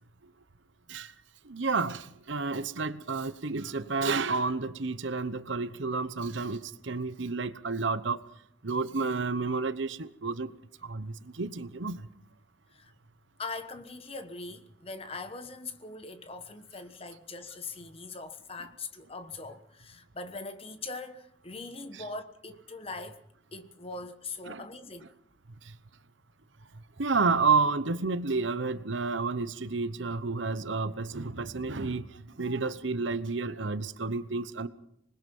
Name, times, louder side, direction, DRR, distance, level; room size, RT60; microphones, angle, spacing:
voice 1, 1.4-8.2 8.6-10.5 10.8-12.1 21.9-22.0 24.5-24.6 25.6-25.8 27.0-34.7, right 4 dB, 75° right, 1.0 m, -30 dB
voice 2, 13.4-23.2 23.5-25.0, left 3 dB, 30° left, 1.2 m, -41 dB
26.0 x 20.5 x 5.5 m
head